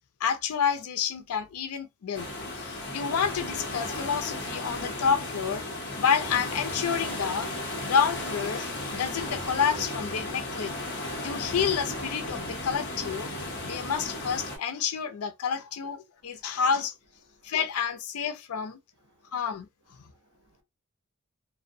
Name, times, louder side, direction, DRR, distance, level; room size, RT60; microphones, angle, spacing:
voice 1, 0.2-2.3 2.5-5.7 6.0-7.5 7.8-10.7 11.1-13.3 13.6-16.9 17.4-18.8 19.3-19.7, left 7 dB, 85° left, 0.4 m, -29 dB
sound 1, 2.1-14.6, left 1 dB, 50° left, 0.7 m, -35 dB
voice 2, 16.2-16.6 17.2-17.5 19.0-19.3 19.9-20.6, right 1 dB, 60° right, 0.9 m, -66 dB
2.5 x 2.0 x 2.6 m
head